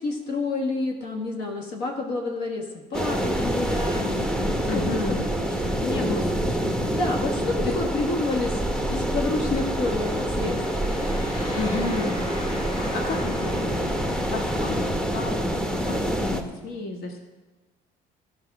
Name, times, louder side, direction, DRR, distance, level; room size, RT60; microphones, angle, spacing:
voice 1, 0.0-6.1 6.9-10.6, left 3 dB, 90° left, 1 dB, 1.5 m, -29 dB
sound 1, 2.9-16.4, right 1 dB, 5° left, 0.8 m, -26 dB
voice 2, 4.6-5.2 5.8-6.8 7.6-7.7 11.5-12.2 12.9-17.2, left 3 dB, 65° left, 2 dB, 1.5 m, -32 dB
sound 2, 9.7-15.1, left 1 dB, 40° left, 1.9 m, -40 dB
14.0 x 5.5 x 6.0 m, 1.2 s
cardioid pair, 110°, 17 cm